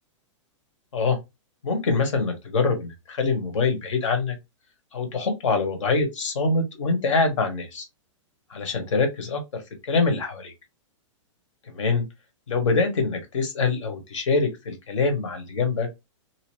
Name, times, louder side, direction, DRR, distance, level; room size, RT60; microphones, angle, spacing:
voice 1, 1.6-4.3 4.9-7.8 8.5-10.5 11.7-12.0 12.5-15.9, left 4 dB, 70° left, 1.2 m, -24 dB
2.9 x 2.5 x 3.0 m
hypercardioid pair, 155°, 16 cm